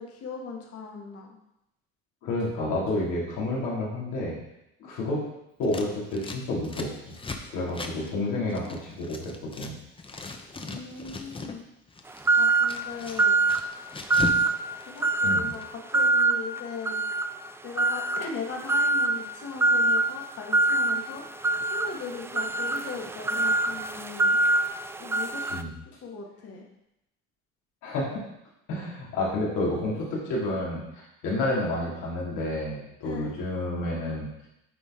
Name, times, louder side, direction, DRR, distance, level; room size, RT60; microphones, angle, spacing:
voice 1, 0.0-1.3 7.8-8.8 10.6-11.6 12.4-13.4 14.9-17.0 17.6-21.2 21.7-24.4 25.0-25.4 26.0-26.6 33.0-33.3, left 5 dB, 50° left, 1 dB, 1.6 m, -39 dB
voice 2, 2.2-4.4 4.8-5.2 5.6-7.1 7.5-9.7 15.2-15.5 25.5-25.7 27.8-28.1 28.7-34.5, left 2 dB, 80° left, -5 dB, 2.6 m, -30 dB
Scissors, 5.6-9.7 10.0-11.6 11.9-14.5 14.7-15.6, left 3 dB, 20° left, 0.8 m, -38 dB
sound 1, 12.3-12.8 13.2-13.7 14.1-14.6 15.0-15.5 15.9-16.4 16.9-17.3 17.8-18.2 18.7-19.1 19.6-20.0 20.5-20.9 21.4-25.6, right 2 dB, 10° right, 0.3 m, -23 dB
9.2 x 4.1 x 3.7 m, 0.85 s
cardioid pair, 100°, 29 cm